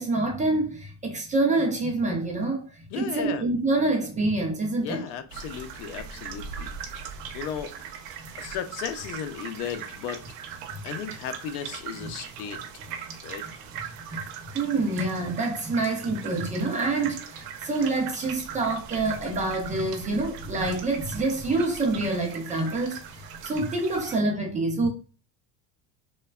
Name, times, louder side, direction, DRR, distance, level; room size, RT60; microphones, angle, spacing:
voice 1, 0.0-2.6 3.0-5.0 14.1-14.2 14.5-23.0 23.4-24.9, right 2 dB, 15° right, 0.4 m, -26 dB
voice 2, 2.9-3.4 4.7-6.7 7.3-7.8 8.3-10.2 10.8-12.6 13.2-13.5, left 8 dB, 80° left, 0.6 m, -35 dB
sound 1, 5.3-24.2, right 7 dB, 90° right, 0.6 m, -40 dB
3.2 x 2.2 x 2.2 m
supercardioid pair, 115°, 46 cm